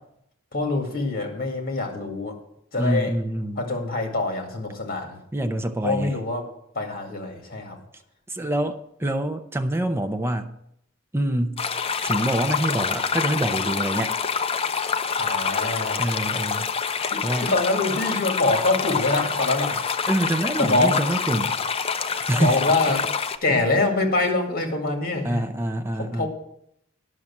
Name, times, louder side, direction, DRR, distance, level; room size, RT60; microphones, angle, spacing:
voice 1, 0.5-2.4 2.7-3.1 3.6-5.2 5.8-6.4 6.7-7.8 15.2-16.0 17.1-19.9 20.6-21.0 22.4-23.1 23.4-25.4 25.9-26.3, left 2 dB, 45° left, 3 dB, 2.3 m, -25 dB
voice 2, 2.8-3.6 5.3-6.1 8.3-10.5 11.1-11.6 12.0-14.2 16.0-16.7 17.2-17.5 20.1-21.5 22.1-22.6 23.5-23.7 25.2-26.3, right 1 dB, 10° right, 6 dB, 0.6 m, -26 dB
sound 1, 11.6-23.4, left 6 dB, 30° left, 0.5 m, -26 dB
11.0 x 6.5 x 7.2 m, 0.76 s
head